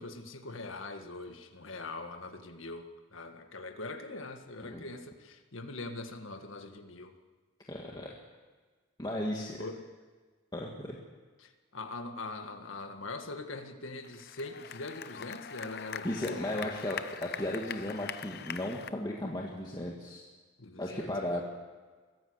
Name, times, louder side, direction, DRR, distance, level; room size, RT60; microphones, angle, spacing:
voice 1, 0.0-7.2 9.1-9.3 9.6-9.9 11.4-16.7 20.6-21.4, left 2 dB, 80° left, 6 dB, 1.9 m, -42 dB
voice 2, 7.7-8.1 9.0-9.6 10.5-11.0 16.0-20.2 20.8-21.4, left 1 dB, 20° left, -2 dB, 1.9 m, -35 dB
sound 1, 14.0-18.9, left 8 dB, 55° left, 0.8 m, -42 dB
23.5 x 15.0 x 8.1 m, 1.4 s
head